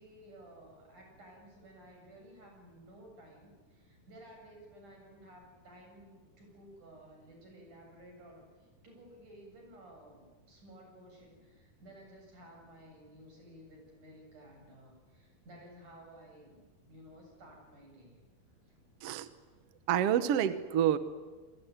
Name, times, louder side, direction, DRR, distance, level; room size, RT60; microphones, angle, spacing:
voice 1, 0.0-18.2 18.7-18.8 19.5-19.6, right 1 dB, 55° right, 2 dB, 9.1 m, -55 dB
voice 2, 19.9-21.0, right 10 dB, 70° right, 12 dB, 1.4 m, -28 dB
27.5 x 22.5 x 9.6 m, 1.3 s
omnidirectional pair, 4.4 m